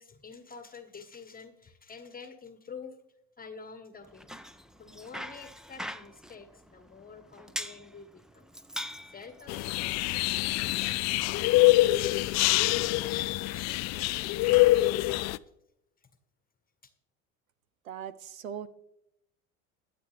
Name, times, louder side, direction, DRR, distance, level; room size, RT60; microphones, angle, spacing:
voice 1, 0.0-3.0 3.4-4.3 4.8-8.5 9.0-11.4 11.8-15.3 16.0-16.1, left 5 dB, 20° left, 9 dB, 1.3 m, -49 dB
Bicycle, 4.0-12.4, equal, ahead, 0.6 m, -44 dB
sound 1, 9.5-15.4, left 19 dB, 45° left, 0.5 m, -25 dB
voice 2, 17.9-18.7, right 9 dB, 90° right, 16 dB, 0.8 m, -39 dB
22.5 x 8.0 x 3.4 m, 0.83 s
hypercardioid pair, 75°, 39 cm